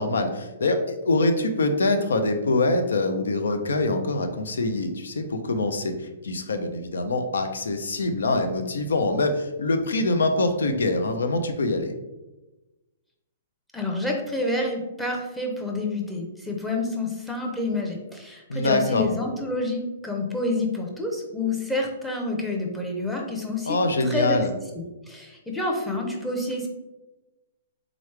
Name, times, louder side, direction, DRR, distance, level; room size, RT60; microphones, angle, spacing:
voice 1, 0.0-11.9 18.5-19.0 23.7-24.5, left 2 dB, 85° left, 7 dB, 0.5 m, -24 dB
voice 2, 13.7-23.8 24.1-24.4 24.7-26.7, left 2 dB, 5° left, 0 dB, 0.7 m, -28 dB
3.7 x 3.1 x 3.2 m, 1.1 s
hypercardioid pair, 140°, 0 cm